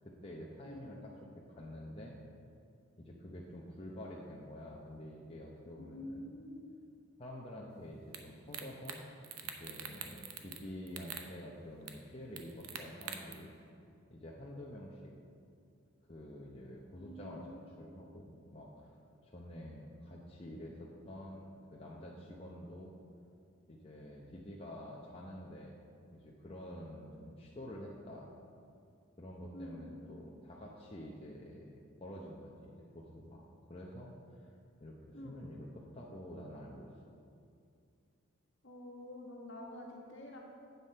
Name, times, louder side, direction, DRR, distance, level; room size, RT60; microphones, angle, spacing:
voice 1, 0.0-1.1 1.5-2.2 2.9-6.2 7.2-9.0 9.4-13.5 14.1-15.1 16.1-17.4 17.8-18.9 19.2-22.9 23.7-25.8 26.1-28.3 29.2-31.7 32.0-33.4 33.7-34.1 34.4-34.5 34.8-36.9, left 1 dB, 25° left, -3 dB, 0.8 m, -48 dB
voice 2, 5.8-6.8 17.0-17.9 29.5-29.9 35.1-35.4 38.6-40.4, left 1 dB, 60° left, -1 dB, 1.5 m, -48 dB
sound 1, 8.1-8.2 8.5-9.0 9.2-10.6 10.9-11.3 11.9-12.0 12.4-13.3, right 8 dB, 90° right, 0.8 m, -43 dB
8.3 x 7.7 x 5.6 m, 2.4 s
head